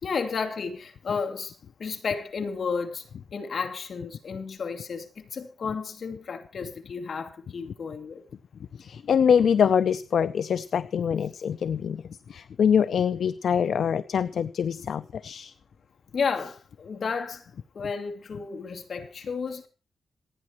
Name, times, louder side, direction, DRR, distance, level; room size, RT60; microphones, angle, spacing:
voice 1, 0.0-3.0 3.3-8.2 16.1-17.5 17.7-19.7, left 5 dB, 50° left, 2.5 m, -32 dB
voice 2, 8.8-12.0 12.3-15.5, left 7 dB, 70° left, 0.6 m, -24 dB
27.0 x 9.6 x 3.1 m
wide cardioid pair, 135°, 0 cm